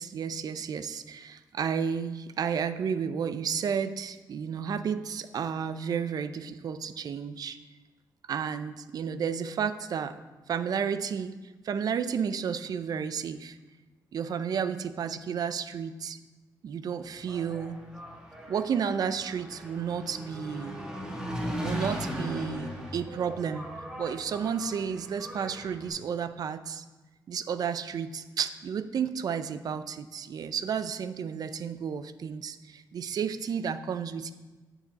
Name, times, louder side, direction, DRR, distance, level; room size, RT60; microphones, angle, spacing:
voice 1, 0.0-7.6 8.3-10.2 10.5-11.4 11.6-13.6 14.1-16.2 16.6-17.8 18.5-20.8 21.6-23.7 24.0-26.9 27.3-34.3, right 7 dB, 60° right, 12 dB, 0.5 m, -32 dB
Engine, 17.0-25.9, equal, 10° right, 1.8 m, -38 dB
9.3 x 6.9 x 4.1 m, 1.2 s
cardioid pair, 105°, 7 cm